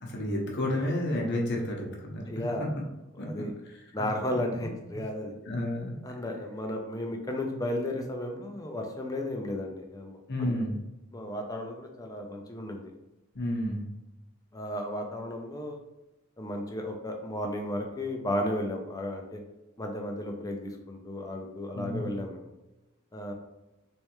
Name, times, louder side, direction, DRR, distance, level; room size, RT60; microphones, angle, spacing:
voice 1, 0.0-2.2 3.2-3.5 4.0-4.7 5.5-5.9 10.3-10.8 13.3-13.9 21.7-22.1, left 1 dB, 55° left, 0 dB, 0.9 m, -31 dB
voice 2, 2.3-2.7 3.2-3.5 3.9-5.3 6.0-10.5 11.1-12.9 14.5-15.8 16.4-19.4 19.8-22.5 23.1-23.3, left 1 dB, 15° left, 2 dB, 0.5 m, -34 dB
3.4 x 3.2 x 3.1 m, 0.99 s
head